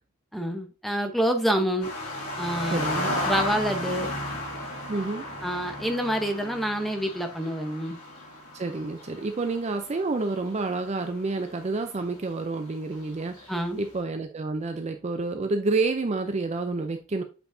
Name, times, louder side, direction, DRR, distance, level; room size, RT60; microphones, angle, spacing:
voice 1, 0.3-1.9 2.4-2.8 3.2-4.1 5.4-8.0 13.5-13.8, equal, ahead, 0.8 m, -27 dB
sound 1, 1.8-11.3 11.6-12.0 12.9-13.6, left 1 dB, 80° left, 2.7 m, -34 dB
voice 2, 2.7-3.2 4.9-5.3 8.5-13.5 13.8-17.2, right 3 dB, 30° right, 0.4 m, -29 dB
8.0 x 4.5 x 2.6 m
head